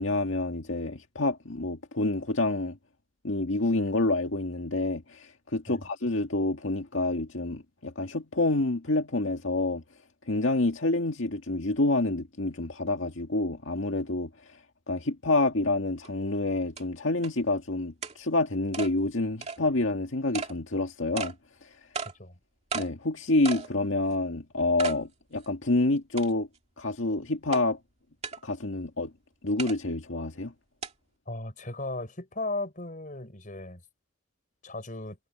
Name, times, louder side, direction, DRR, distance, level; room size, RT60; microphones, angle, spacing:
voice 1, 0.0-2.8 3.2-9.8 10.3-14.6 14.9-21.3 21.6-21.8 22.7-26.5 26.8-27.8 28.4-29.1 29.4-30.5, left 2 dB, 80° left, 1.9 m, -28 dB
sound 1, 16.0-16.1 16.8-16.9 17.2-17.3 18.0-18.2 18.7-18.9 19.4-19.6 20.3-20.5 21.2-21.3 21.9-22.1 22.7-22.9 23.4-23.7 24.1-24.2 24.8-25.0 25.4-25.5 26.2-26.6 27.5-27.6 28.2-28.4 29.6-29.8 30.8-30.9, right 5 dB, 35° right, 2.3 m, -34 dB
voice 2, 31.3-33.8 34.6-35.2, left 2 dB, 40° left, 6.6 m, -36 dB
head